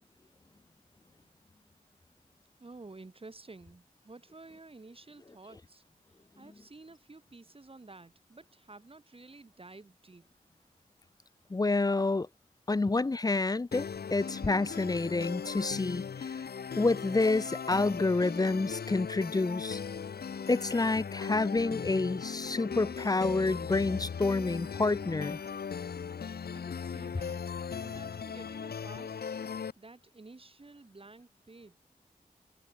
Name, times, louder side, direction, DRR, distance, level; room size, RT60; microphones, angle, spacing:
voice 1, 2.6-5.8 6.4-10.3 12.9-13.0 26.5-27.4 27.8-29.2 29.7-31.8, right 3 dB, 35° right, 6.8 m, -51 dB
voice 2, 11.5-12.3 12.7-16.0 16.8-19.8 20.5-25.4, left 3 dB, 25° left, 0.5 m, -28 dB
sound 1, 13.7-29.7, left 6 dB, 90° left, 1.1 m, -38 dB
wide cardioid pair, 110°, 16 cm